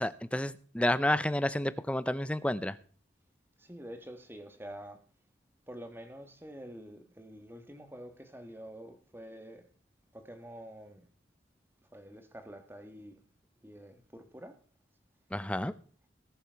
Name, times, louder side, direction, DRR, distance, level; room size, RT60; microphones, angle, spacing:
voice 1, 0.0-2.8 15.3-15.7, left 1 dB, 5° left, 0.5 m, -30 dB
voice 2, 3.6-5.1 5.7-9.7 10.1-11.1 11.9-13.2 13.6-14.6, equal, 10° right, 1.5 m, -47 dB
19.5 x 7.0 x 4.6 m
head